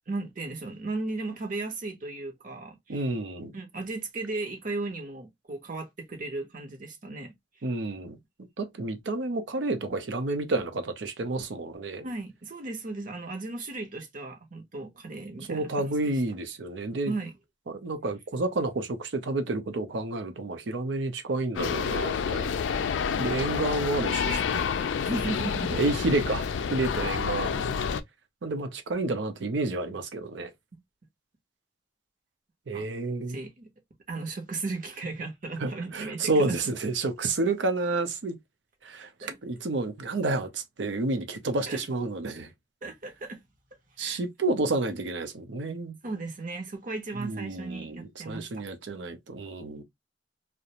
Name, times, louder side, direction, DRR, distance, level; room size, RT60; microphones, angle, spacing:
voice 1, 0.1-3.1 3.5-7.3 12.0-16.2 17.1-17.3 25.0-25.8 32.7-32.8 33.3-33.7 34.1-36.7 39.2-39.4 41.7-41.8 42.8-43.4 44.0-44.2 46.0-48.5, right 3 dB, 45° right, 0.8 m, -36 dB
voice 2, 2.9-3.5 7.6-8.2 8.6-12.1 15.5-17.1 17.7-22.6 23.2-24.6 25.8-26.5 26.7-27.7 28.4-30.5 32.7-33.4 35.6-38.4 38.8-39.1 39.4-42.5 44.0-45.9 47.2-49.8, right 2 dB, 75° right, 0.6 m, -30 dB
sound 1, 21.6-28.0, left 6 dB, 80° left, 0.3 m, -29 dB
2.5 x 2.1 x 2.8 m
head